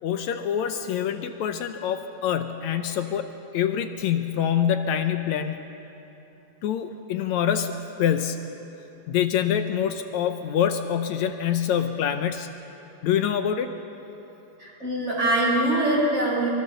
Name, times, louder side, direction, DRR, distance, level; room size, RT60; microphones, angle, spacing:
voice 1, 0.0-5.6 6.6-8.4 9.1-12.5 13.0-13.7, left 9 dB, 75° left, 8 dB, 1.8 m, -25 dB
voice 2, 14.6-16.5, right 1 dB, 40° right, -5 dB, 6.1 m, -23 dB
23.5 x 23.0 x 6.9 m, 2.9 s
omnidirectional pair, 3.9 m